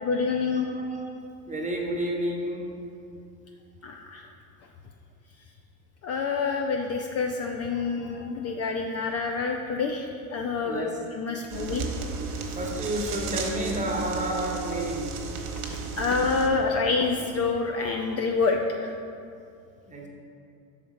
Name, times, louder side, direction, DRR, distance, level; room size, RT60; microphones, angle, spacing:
voice 1, 0.0-0.8 3.8-4.3 6.0-11.8 12.3-12.6 15.7-18.9, left 4 dB, 35° left, 2 dB, 0.5 m, -27 dB
voice 2, 1.5-2.7 8.4-8.5 10.6-10.9 12.6-15.1 19.9-20.1, right 1 dB, 15° right, -1 dB, 1.1 m, -30 dB
sound 1, 11.5-16.5, right 5 dB, 60° right, 1.1 m, -34 dB
5.6 x 4.2 x 4.9 m, 2.5 s
hypercardioid pair, 80°, 44 cm